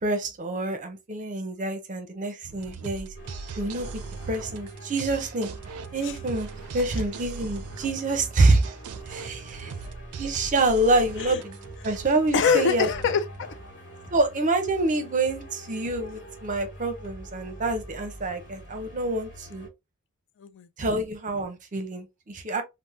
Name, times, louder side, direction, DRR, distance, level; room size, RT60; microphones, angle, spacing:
voice 1, 0.0-3.1 3.6-5.5 5.9-8.6 9.1-9.7 10.2-11.5 11.8-12.9 14.1-19.7 20.8-22.6, right 2 dB, 35° right, 0.7 m, -26 dB
sound 1, 2.4-14.1, right 5 dB, 75° right, 0.4 m, -40 dB
sound 2, 3.1-19.7, right 2 dB, 35° left, 1.4 m, -44 dB
voice 2, 12.3-13.6 20.4-20.9, left 6 dB, 55° left, 0.4 m, -25 dB
3.4 x 2.1 x 2.7 m
head